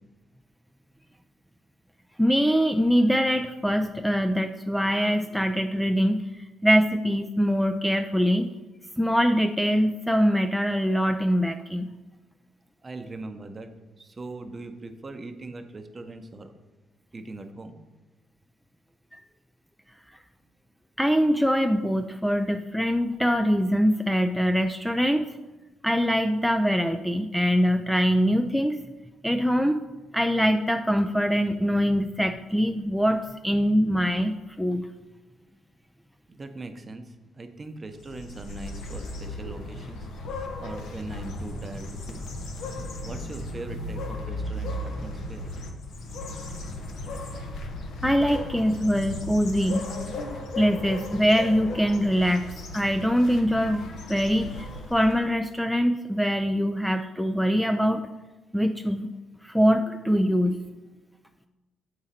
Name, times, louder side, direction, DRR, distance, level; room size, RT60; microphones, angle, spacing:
voice 1, 2.2-6.3 6.6-8.5 9.0-11.9 21.0-25.3 25.8-28.8 29.2-29.8 30.1-34.9 48.0-49.9 50.6-58.0 58.5-59.1 59.4-60.6, equal, ahead, 7 dB, 0.3 m, -23 dB
voice 2, 12.8-16.5 17.1-17.7 36.3-40.1 40.6-42.2 43.0-45.5, right 2 dB, 30° right, 7 dB, 0.7 m, -40 dB
sound 1, 38.0-55.3, left 2 dB, 75° left, 1.0 m, -36 dB
7.0 x 5.1 x 4.2 m, 1.1 s
cardioid pair, 90°, 0 cm